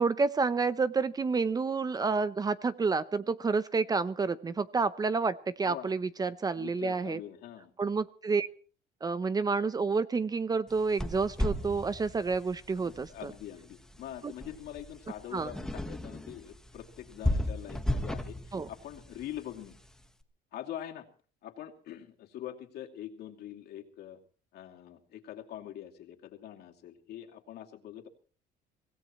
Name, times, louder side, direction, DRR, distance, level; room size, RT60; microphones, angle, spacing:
voice 1, 0.0-7.2 7.8-8.5 9.0-13.3 14.2-14.3 15.3-15.5 18.5-18.7, right 4 dB, 20° right, 15 dB, 0.6 m, -29 dB
voice 2, 6.5-7.7 12.8-19.8 20.5-21.1 21.4-24.2 24.5-28.1, left 11 dB, 65° left, 2 dB, 2.6 m, -44 dB
sound 1, 10.7-20.1, left 1 dB, 5° left, 1.3 m, -36 dB
25.0 x 17.0 x 3.1 m, 0.41 s
cardioid pair, 130°, 18 cm